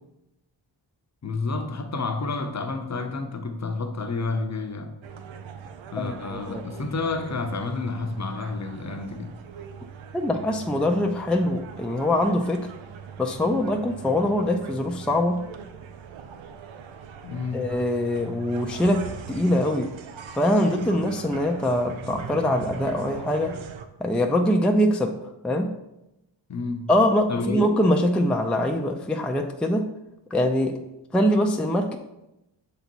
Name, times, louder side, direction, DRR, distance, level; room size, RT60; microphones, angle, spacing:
voice 1, 1.2-5.0 5.9-9.4 17.2-17.8 26.5-26.9 27.3-27.7, left 3 dB, 35° left, 0.7 m, -30 dB
sound 1, 5.0-23.8, right 7 dB, 85° right, 0.7 m, -41 dB
voice 2, 6.0-6.6 10.1-12.7 13.2-15.4 17.5-19.9 20.3-23.5 24.0-25.2 25.4-25.7 26.9-29.9 30.3-30.8 31.1-32.0, left 1 dB, ahead, 0.4 m, -23 dB
6.8 x 4.0 x 4.5 m
wide cardioid pair, 95°, 45 cm